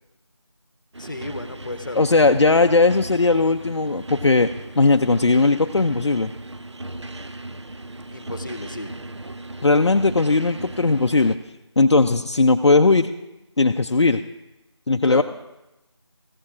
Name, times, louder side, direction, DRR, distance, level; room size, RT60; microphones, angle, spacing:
sound 1, 0.9-11.4, right 2 dB, 70° right, 0.7 m, -37 dB
voice 1, 1.0-2.0 8.1-8.9 15.0-15.2, left 2 dB, 45° left, 9 dB, 0.9 m, -33 dB
voice 2, 1.9-4.5 4.8-6.3 9.6-11.4 11.8-13.1 13.6-14.2 14.9-15.2, left 3 dB, 65° left, 5 dB, 0.5 m, -18 dB
16.5 x 15.0 x 2.5 m, 0.97 s
figure-of-eight pair, 170°, 15 cm